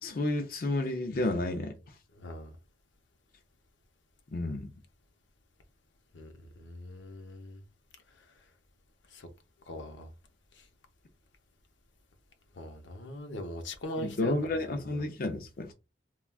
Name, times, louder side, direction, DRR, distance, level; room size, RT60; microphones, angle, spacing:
voice 1, 0.0-1.9 4.3-4.7 14.0-15.7, left 2 dB, 50° left, 0.4 m, -31 dB
voice 2, 2.2-2.5 6.1-6.3 6.6-7.6 9.1-9.3 9.7-10.1 12.6-14.3, left 1 dB, 90° left, 0.7 m, -40 dB
3.4 x 2.2 x 2.2 m
head